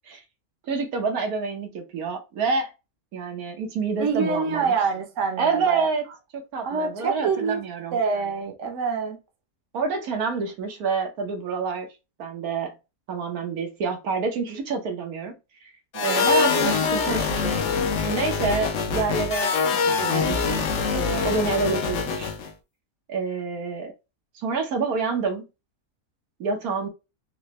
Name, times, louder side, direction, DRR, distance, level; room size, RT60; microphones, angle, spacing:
voice 1, 0.7-2.7 3.1-4.7 5.4-6.0 6.3-8.0 9.7-11.9 12.2-12.7 13.1-15.4 16.0-17.6 18.1-20.7 20.9-22.3 23.1-23.9 24.3-25.4 26.4-26.9, right 4 dB, 85° right, 1.4 m, -27 dB
voice 2, 4.0-5.9 6.6-7.6 7.9-9.2 15.9-16.3, right 5 dB, 65° right, 1.1 m, -26 dB
sound 1, 15.9-22.5, left 5 dB, 65° left, 0.9 m, -24 dB
3.9 x 2.2 x 3.0 m
omnidirectional pair, 1.5 m